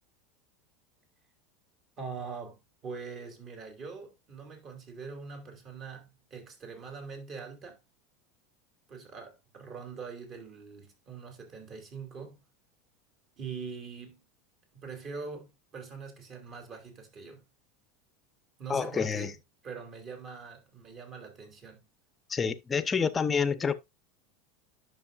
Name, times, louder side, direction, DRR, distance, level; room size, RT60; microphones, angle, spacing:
voice 1, 2.0-7.8 8.9-12.4 13.4-14.2 14.8-17.4 18.6-19.3 19.6-21.8, right 5 dB, 35° right, 2.9 m, -43 dB
voice 2, 18.7-19.3 22.3-23.8, left 6 dB, 20° left, 0.8 m, -28 dB
10.5 x 6.5 x 2.5 m
supercardioid pair, 130°, 0 cm